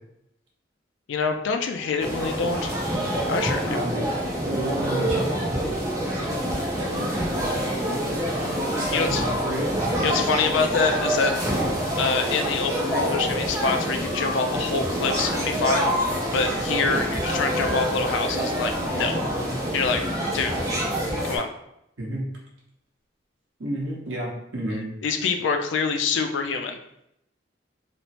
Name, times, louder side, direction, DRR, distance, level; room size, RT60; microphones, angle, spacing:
voice 1, 1.1-2.7 3.3-3.9 8.9-9.2 10.0-11.3 12.0-15.9 16.3-19.2 19.7-20.0 20.3-20.5 21.2-21.5 25.0-26.8, left 4 dB, 80° left, 5 dB, 0.4 m, -25 dB
sound 1, 2.0-21.4, equal, 15° right, 0.5 m, -26 dB
voice 2, 3.7-4.0 4.4-5.8 6.7-7.2 8.4-9.8 11.5-11.7 16.9-17.0 22.0-22.3 23.6-24.8, right 1 dB, 85° right, -3 dB, 0.9 m, -30 dB
3.0 x 2.0 x 2.8 m, 0.80 s
head